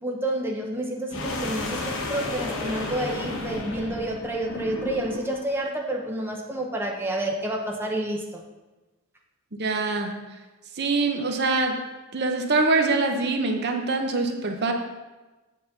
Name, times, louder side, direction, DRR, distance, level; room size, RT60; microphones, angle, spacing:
voice 1, 0.0-8.4, right 1 dB, 10° right, 0 dB, 0.8 m, -29 dB
sound 1, 1.1-5.4, left 2 dB, 65° left, 1.2 m, -32 dB
voice 2, 9.5-10.1 10.7-11.8 12.1-14.7, right 3 dB, 50° right, 4 dB, 0.8 m, -24 dB
8.1 x 4.1 x 6.6 m, 1.2 s
head